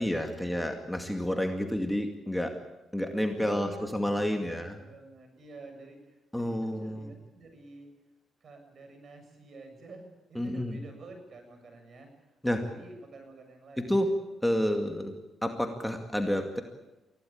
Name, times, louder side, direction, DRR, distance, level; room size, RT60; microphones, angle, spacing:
voice 1, 0.0-2.5 2.9-4.8 6.3-7.1 10.4-10.8 12.4-12.6 13.8-14.1 14.4-16.6, equal, 5° left, 4 dB, 2.3 m, -30 dB
voice 2, 3.3-7.9 8.4-13.9, right 2 dB, 50° right, 6 dB, 7.2 m, -49 dB
24.0 x 16.5 x 8.7 m, 1.0 s
cardioid pair, 90°, 0 cm